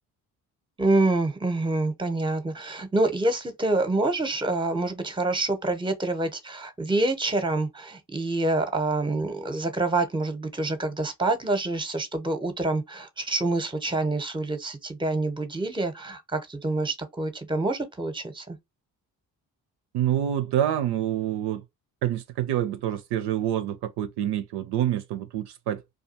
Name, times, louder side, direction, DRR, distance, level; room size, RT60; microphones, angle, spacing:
voice 1, 0.8-18.6, right 2 dB, 10° right, 0.7 m, -27 dB
voice 2, 19.9-21.6 22.0-25.8, right 11 dB, 65° right, 0.5 m, -27 dB
2.4 x 2.3 x 2.7 m
supercardioid pair, 50°, 44 cm